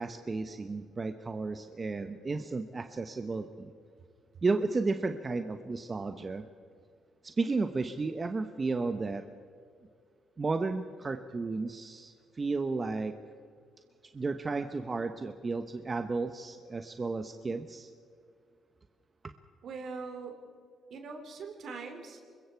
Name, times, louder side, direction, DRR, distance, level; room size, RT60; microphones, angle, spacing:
voice 1, 0.0-3.7 4.4-6.5 7.2-9.2 10.4-13.1 14.1-17.9, right 3 dB, 30° right, 8 dB, 1.1 m, -33 dB
voice 2, 19.6-20.4 20.9-22.2, right 4 dB, 65° right, 5 dB, 3.7 m, -41 dB
25.5 x 22.0 x 4.7 m, 2.2 s
cardioid pair, 90°, 0 cm